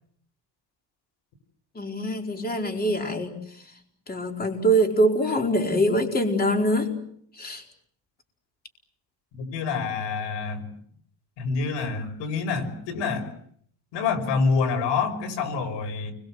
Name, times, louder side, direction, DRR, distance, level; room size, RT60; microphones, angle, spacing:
voice 1, 1.7-3.6 4.1-6.9 7.3-7.6, right 1 dB, 20° left, 3 dB, 4.7 m, -24 dB
voice 2, 9.3-10.6 11.4-13.3 13.9-16.1, left 4 dB, 85° left, 6 dB, 6.0 m, -27 dB
29.5 x 23.0 x 7.9 m, 0.67 s
cardioid pair, 130°, 42 cm